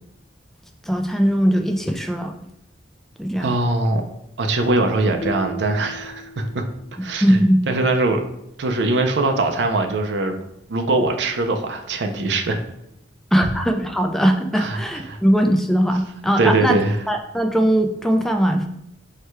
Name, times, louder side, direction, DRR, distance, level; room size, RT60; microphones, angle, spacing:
voice 1, 0.8-2.3 3.2-3.5 7.2-7.6 13.3-16.8 17.1-18.7, equal, ahead, 4 dB, 0.3 m, -19 dB
voice 2, 3.4-4.0 4.4-6.6 7.0-7.4 7.7-8.2 8.6-10.4 10.7-12.6 14.5-14.8 15.1-15.2 16.4-17.0, right 2 dB, 70° right, 4 dB, 0.5 m, -21 dB
sound 1, 5.2-7.4, equal, 85° left, 0.6 m, -36 dB
4.6 x 2.2 x 4.5 m, 0.79 s
head